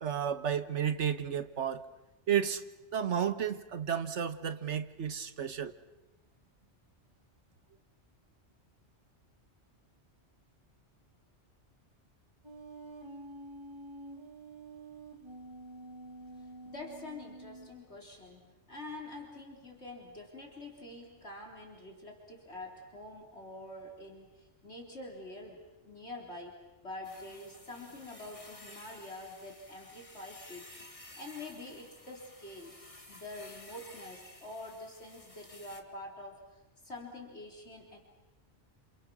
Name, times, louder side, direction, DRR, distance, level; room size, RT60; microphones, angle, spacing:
voice 1, 0.0-1.8 2.3-2.6 2.9-5.7, right 8 dB, 80° right, 11 dB, 1.5 m, -32 dB
sound 1, 12.4-17.7, right 2 dB, 25° right, 2.0 m, -48 dB
voice 2, 16.4-26.6 26.8-30.7 31.1-32.7 33.1-38.0, left 2 dB, 65° left, 0 dB, 4.0 m, -46 dB
sound 2, 27.0-35.8, left 2 dB, 30° left, 2.2 m, -53 dB
29.5 x 27.5 x 6.2 m, 1.0 s
omnidirectional pair, 1.2 m